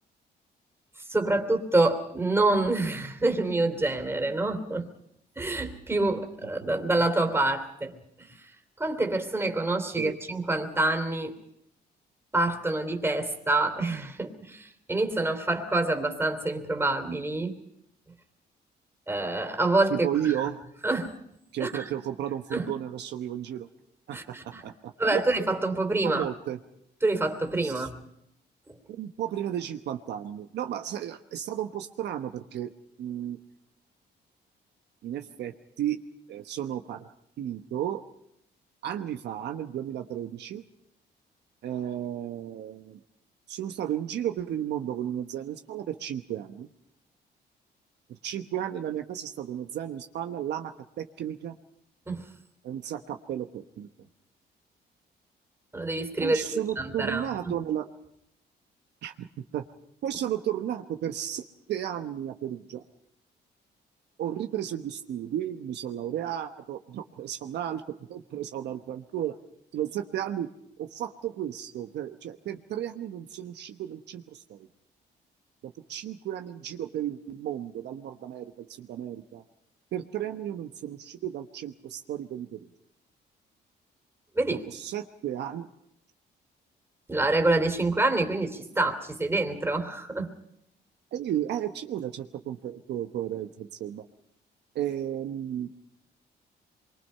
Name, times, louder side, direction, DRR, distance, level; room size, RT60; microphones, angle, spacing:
voice 1, 1.1-4.9 5.4-8.4 8.8-11.3 12.3-17.6 19.1-20.3 20.8-21.1 21.6-21.8 22.5-22.7 24.1-24.6 25.0-26.2 27.0-28.0 28.7-28.8 52.1-52.2 55.7-57.5 84.3-84.6 87.1-90.3, right 2 dB, 15° right, 5 dB, 3.0 m, -27 dB
voice 2, 19.9-20.6 21.5-23.7 24.1-25.2 26.0-26.6 27.6-27.9 28.9-32.7 33.0-33.4 35.0-36.0 36.3-37.1 37.4-38.0 38.8-40.6 41.6-43.0 43.5-46.7 48.1-51.6 52.6-53.9 56.2-57.9 59.0-59.3 59.5-59.6 60.0-62.8 64.2-69.4 69.7-70.5 70.8-74.7 75.6-79.4 79.9-82.7 84.5-85.7 91.1-94.0 94.7-95.7, right 11 dB, 75° right, 6 dB, 1.1 m, -33 dB
25.0 x 23.0 x 5.6 m, 0.79 s
cardioid pair, 105°, 18 cm